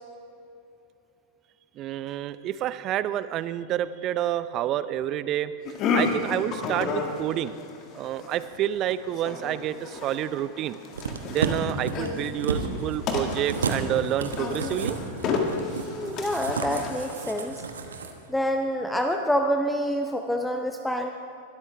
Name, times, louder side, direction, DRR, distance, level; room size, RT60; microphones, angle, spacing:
voice 1, 1.8-5.5 5.9-7.6 7.9-10.8 11.3-15.0, right 12 dB, 35° right, 15 dB, 0.5 m, -29 dB
sound 1, 5.7-17.6, left 4 dB, 35° left, 1.7 m, -32 dB
sound 2, 10.9-18.1 18.4-18.5, right 4 dB, 70° right, 1.1 m, -32 dB
voice 2, 15.8-17.6 18.3-21.1, equal, 5° left, 4 dB, 0.7 m, -27 dB
21.5 x 13.0 x 3.4 m, 2.7 s
figure-of-eight pair, 90°, 0 cm